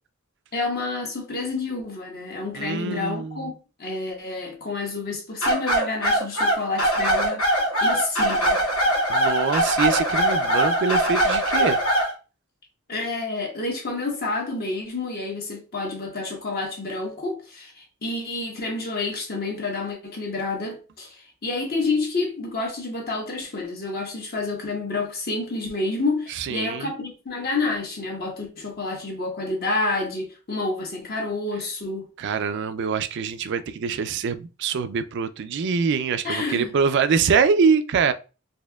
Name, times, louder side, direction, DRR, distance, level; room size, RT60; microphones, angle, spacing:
voice 1, 0.5-8.6 12.9-32.1 36.2-36.7, left 3 dB, 45° left, 1.1 m, -29 dB
voice 2, 2.5-3.5 9.1-11.8 26.4-26.9 32.2-38.1, right 5 dB, 55° right, 0.3 m, -24 dB
sound 1, 5.4-12.1, right 1 dB, 80° left, 1.9 m, -21 dB
4.2 x 2.7 x 2.3 m
head